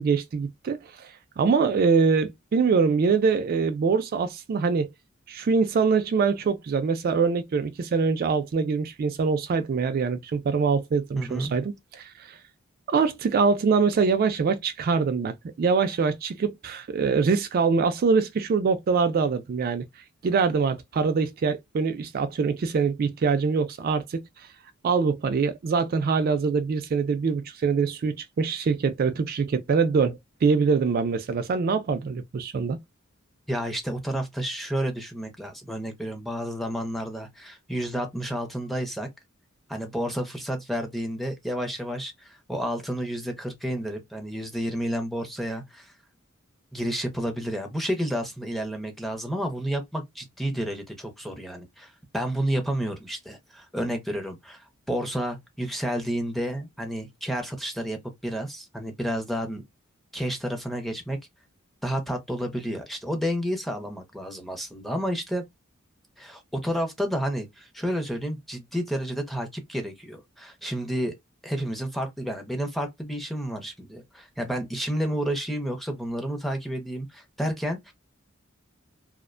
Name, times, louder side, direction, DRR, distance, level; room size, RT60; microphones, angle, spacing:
voice 1, 0.0-4.9 5.3-12.4 12.9-19.8 20.2-24.2 24.8-32.8, right 5 dB, 45° right, 0.3 m, -24 dB
voice 2, 11.1-11.5 33.5-39.1 39.7-45.9 46.7-59.6 60.1-61.2 61.8-65.4 66.2-71.1 71.4-77.9, equal, ahead, 0.6 m, -30 dB
2.4 x 2.1 x 2.4 m
head